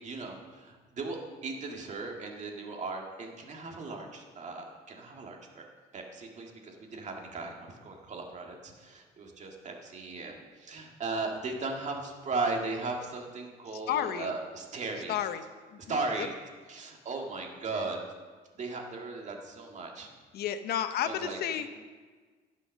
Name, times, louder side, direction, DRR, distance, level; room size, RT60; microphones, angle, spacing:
voice 1, 0.0-5.7 5.9-15.2 15.8-16.3 16.7-18.0 18.5-20.1 21.1-21.7, right 3 dB, 45° right, 1 dB, 1.8 m, -37 dB
voice 2, 13.9-14.3 15.1-15.4 15.7-16.3 20.3-21.7, left 10 dB, 70° left, 10 dB, 0.8 m, -32 dB
14.5 x 5.7 x 6.4 m, 1.4 s
cardioid pair, 110°, 17 cm